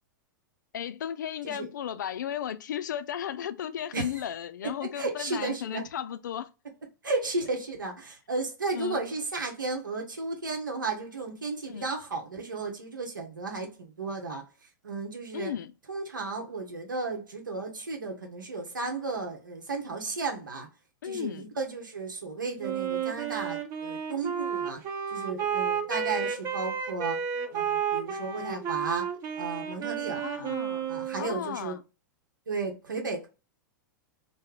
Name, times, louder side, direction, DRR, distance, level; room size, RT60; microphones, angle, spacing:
voice 1, 0.7-6.5 8.7-9.0 11.7-11.8 15.3-15.7 21.0-21.5 30.2-30.9 31.2-31.8, left 9 dB, 70° left, 0.4 m, -35 dB
voice 2, 4.6-5.8 7.0-15.5 15.9-20.7 21.0-24.8 25.1-27.2 27.5-29.1 29.4-30.5 30.9-31.8 32.5-33.3, right 3 dB, 85° right, 0.8 m, -34 dB
Wind instrument woodwind instrument, 22.6-31.5, right 7 dB, 35° right, 0.9 m, -32 dB
3.2 x 2.1 x 3.7 m
figure-of-eight pair, 100°, 10 cm